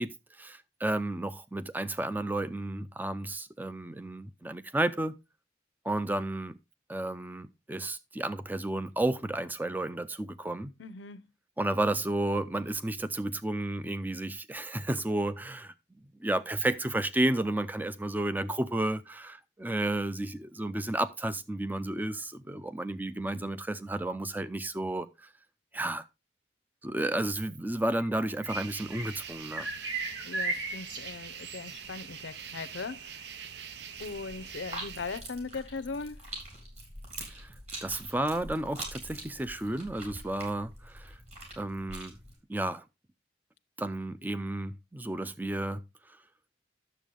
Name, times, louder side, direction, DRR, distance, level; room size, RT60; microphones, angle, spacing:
voice 1, 0.0-5.1 5.8-6.6 6.9-10.7 11.6-15.7 16.2-25.3 25.7-26.0 26.8-29.7 37.3-37.5 37.8-41.2 41.6-42.2 42.5-42.8 43.8-45.8 46.1-46.2, right 1 dB, 10° right, 0.4 m, -32 dB
voice 2, 10.8-11.3 30.2-33.3 34.0-36.2, left 4 dB, 85° left, 0.6 m, -39 dB
sound 1, 28.0-29.3 29.5-31.8, right 3 dB, 80° right, 1.8 m, -36 dB
sound 2, 28.5-35.2, right 7 dB, 65° right, 0.7 m, -44 dB
sound 3, 33.9-42.4, right 1 dB, 35° right, 3.8 m, -44 dB
10.0 x 7.2 x 3.7 m
head